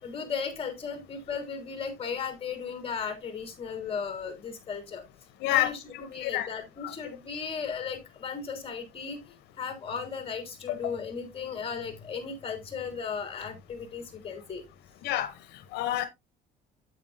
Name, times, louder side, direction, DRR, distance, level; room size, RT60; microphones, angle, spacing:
voice 1, 0.0-5.0 5.5-5.8 6.1-14.6, left 6 dB, 35° left, 3.4 m, -36 dB
voice 2, 5.4-6.5 6.8-6.9 10.7-10.9 15.0-15.3 15.7-16.1, left 13 dB, 85° left, 0.8 m, -29 dB
8.9 x 8.5 x 2.6 m
cardioid pair, 110°, 17 cm